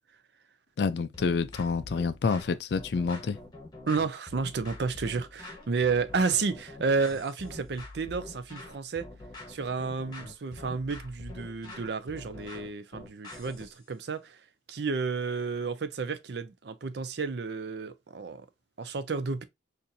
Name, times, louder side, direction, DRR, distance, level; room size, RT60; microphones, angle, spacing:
voice 1, 0.8-3.4, left 5 dB, 60° left, 0.3 m, -28 dB
sound 1, 1.1-13.8, left 2 dB, 20° left, 1.1 m, -45 dB
voice 2, 3.9-9.1 9.5-14.4 14.7-18.5 18.8-19.4, right 4 dB, 60° right, 0.5 m, -31 dB
4.2 x 2.6 x 2.6 m
head